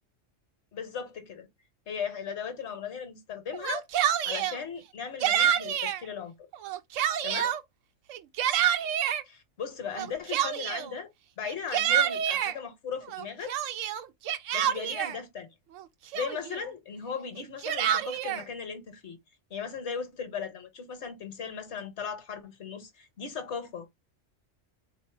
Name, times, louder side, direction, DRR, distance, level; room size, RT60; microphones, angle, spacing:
voice 1, 0.7-1.5 1.9-3.9 4.2-6.3 7.2-7.5 9.3-11.1 11.4-13.5 14.5-15.5 16.1-19.2 19.5-23.9, left 6 dB, 60° left, 1.3 m, -37 dB
Yell, 3.5-4.6 5.2-6.0 6.5-7.6 8.1-9.2 10.0-10.9 11.4-12.5 13.1-15.2 15.8-15.9 16.1-16.6 17.4-18.4, right 10 dB, 80° right, 0.9 m, -27 dB
4.0 x 2.9 x 3.2 m
omnidirectional pair, 1.3 m